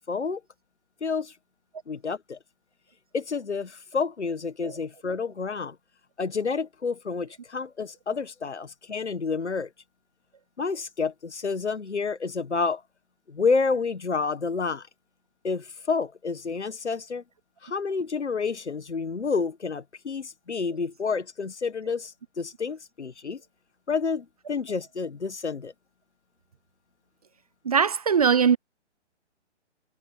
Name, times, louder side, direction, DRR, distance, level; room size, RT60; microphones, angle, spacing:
voice 1, 0.1-0.4 1.0-1.3 1.9-2.4 3.1-5.8 6.2-9.7 10.6-12.8 13.3-14.9 15.4-17.2 17.6-23.4 23.9-25.7, left 4 dB, 70° left, 1.7 m, -29 dB
voice 2, 27.6-28.6, right 7 dB, 30° right, 0.6 m, -21 dB
figure-of-eight pair, 135°, 36 cm